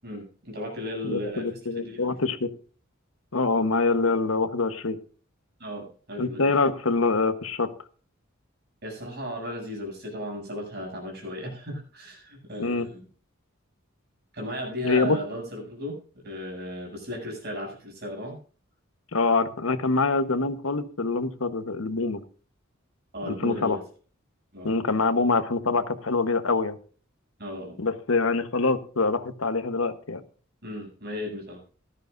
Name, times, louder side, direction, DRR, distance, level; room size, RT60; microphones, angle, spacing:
voice 1, 0.0-1.5 1.7-2.1 5.6-6.5 8.8-13.0 14.3-16.0 16.2-18.4 23.1-23.8 24.5-25.0 27.4-27.8 30.6-31.6, equal, 55° right, 0 dB, 7.5 m, -35 dB
voice 2, 1.0-2.5 3.3-5.0 6.2-7.7 12.6-12.9 14.8-15.2 19.1-22.2 23.2-23.8 24.6-26.8 27.8-30.2, left 3 dB, 80° left, 10 dB, 1.1 m, -25 dB
17.0 x 13.0 x 2.6 m, 0.41 s
head